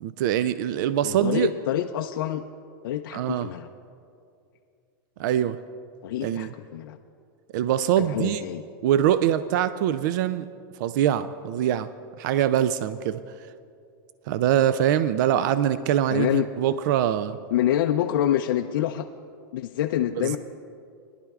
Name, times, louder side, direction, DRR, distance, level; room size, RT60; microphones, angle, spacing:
voice 1, 0.0-1.5 3.1-3.5 5.2-5.6 6.2-6.5 7.5-8.4 8.8-10.5 10.8-11.9 12.2-13.2 14.3-17.4 20.2-20.4, right 10 dB, 60° right, 14 dB, 0.4 m, -23 dB
voice 2, 1.0-2.4 2.8-3.7 6.0-7.0 8.0-8.6 16.1-16.5 17.5-19.1 19.5-20.4, left 12 dB, 80° left, 4 dB, 0.4 m, -26 dB
21.5 x 11.0 x 2.4 m, 2.4 s
supercardioid pair, 145°, 11 cm